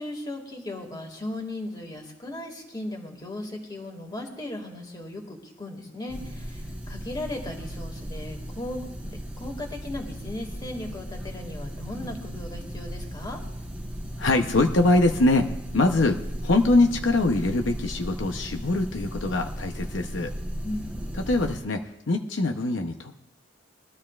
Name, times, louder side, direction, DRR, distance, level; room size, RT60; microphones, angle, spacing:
voice 1, 0.0-13.4 20.6-20.9, left 1 dB, 25° left, 2 dB, 2.1 m, -37 dB
sound 1, 6.1-21.6, equal, 10° right, 1.1 m, -36 dB
voice 2, 14.2-20.3 21.1-23.2, left 2 dB, 75° left, 5 dB, 0.8 m, -23 dB
22.0 x 13.0 x 2.4 m, 0.87 s
head